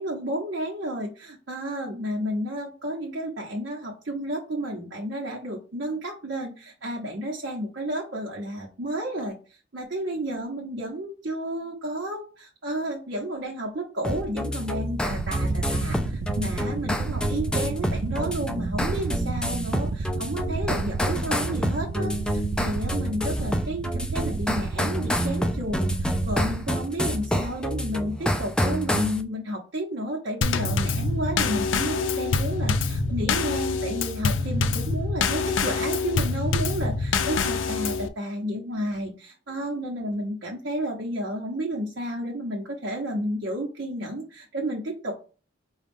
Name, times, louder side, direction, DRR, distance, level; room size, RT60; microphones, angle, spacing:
voice 1, 0.0-9.3 9.7-45.1, right 1 dB, 65° right, -2 dB, 0.9 m, -31 dB
sound 1, 14.0-29.2, equal, 5° left, 0.4 m, -28 dB
sound 2, 15.1-26.8, right 4 dB, 80° right, 0.3 m, -32 dB
Drum kit / Snare drum / Bass drum, 30.4-38.1, left 4 dB, 90° left, 0.4 m, -25 dB
4.9 x 2.3 x 3.5 m, 0.37 s
head